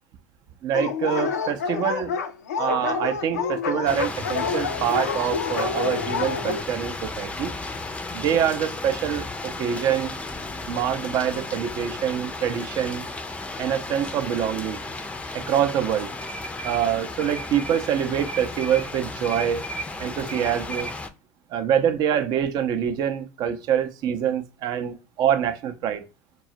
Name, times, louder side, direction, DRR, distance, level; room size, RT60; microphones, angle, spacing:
voice 1, 0.6-2.1 2.6-7.5 8.1-10.1 10.7-13.1 13.6-14.8 15.3-16.1 16.6-19.7 20.0-20.9 21.5-26.0, right 9 dB, 50° right, 0.5 m, -25 dB
Dog, 0.7-6.6, left 6 dB, 80° left, 0.4 m, -28 dB
sound 1, 3.8-21.1, left 2 dB, 15° left, 0.5 m, -34 dB
4.0 x 2.3 x 2.7 m
hypercardioid pair, 70°, 9 cm